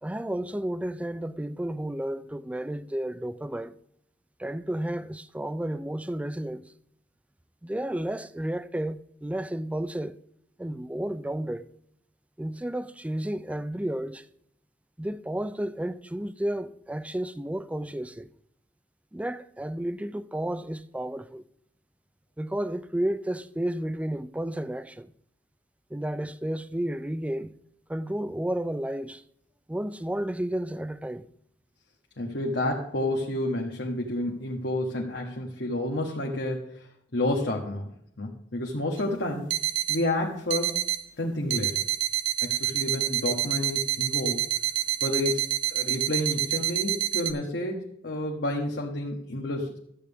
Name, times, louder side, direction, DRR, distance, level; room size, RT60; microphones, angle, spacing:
voice 1, 0.0-3.8 4.4-6.6 7.6-10.2 10.6-11.7 12.4-14.3 15.0-18.3 19.1-21.4 22.4-25.1 25.9-27.5 27.9-29.2 29.7-31.3, right 1 dB, 5° right, 0.4 m, -32 dB
voice 2, 32.2-36.9 37.1-37.9 38.2-39.5 39.9-40.8 41.2-41.8 42.4-44.4 45.0-49.8, left 1 dB, 65° left, 1.4 m, -30 dB
sound 1, 39.0-39.1 39.5-40.0 40.5-41.0 41.5-47.3, right 13 dB, 85° right, 1.0 m, -28 dB
13.0 x 8.1 x 3.5 m
head